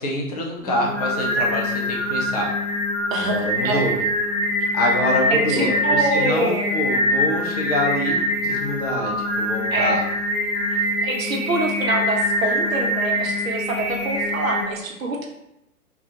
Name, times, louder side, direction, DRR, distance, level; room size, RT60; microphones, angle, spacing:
voice 1, 0.0-2.6 3.2-4.0 4.7-10.0, left 1 dB, 30° left, -1 dB, 0.4 m, -25 dB
Singing, 0.6-14.6, left 1 dB, ahead, 0.7 m, -24 dB
voice 2, 3.1-3.8 5.3-6.7 9.7-10.0 11.0-15.3, right 2 dB, 60° right, 1 dB, 0.9 m, -25 dB
3.6 x 2.3 x 2.8 m, 0.85 s
figure-of-eight pair, 115°, 45 cm